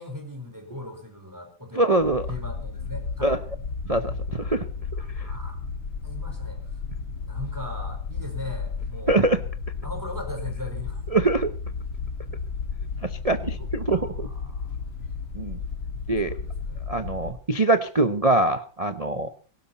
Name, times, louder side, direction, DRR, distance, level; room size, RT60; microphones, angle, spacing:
voice 1, 0.0-1.8 2.3-3.4 5.0-6.6 7.2-9.3 9.8-11.0 13.6-13.7 14.1-14.9 16.2-17.1, left 1 dB, 10° right, 4 dB, 4.6 m, -39 dB
voice 2, 1.8-2.3 3.2-3.4 3.9-4.6 9.1-9.4 11.1-11.5 13.0-14.3 15.3-15.6 16.1-16.3 16.9-19.3, right 2 dB, 55° right, 9 dB, 0.4 m, -23 dB
sound 1, 2.0-17.3, left 5 dB, 80° left, 2.4 m, -33 dB
17.5 x 17.5 x 4.2 m, 0.39 s
omnidirectional pair, 2.1 m